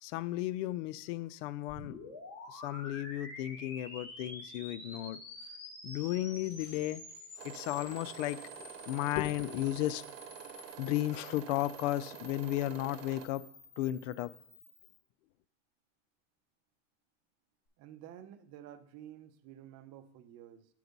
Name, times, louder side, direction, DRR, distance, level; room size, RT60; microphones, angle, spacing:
voice 1, 0.0-2.0 2.5-5.2 5.8-7.0 7.4-8.4 8.9-10.0 10.8-13.5 13.8-14.3, left 14 dB, 65° left, 17 dB, 0.5 m, -34 dB
sound 1, 1.7-15.0, left 2 dB, 50° left, 2.9 m, -49 dB
sound 2, 7.4-13.3, right 11 dB, 65° right, 1.0 m, -48 dB
voice 2, 17.8-20.7, right 11 dB, 40° right, 10 dB, 0.7 m, -51 dB
7.9 x 4.7 x 5.2 m, 0.68 s
supercardioid pair, 120°, 40 cm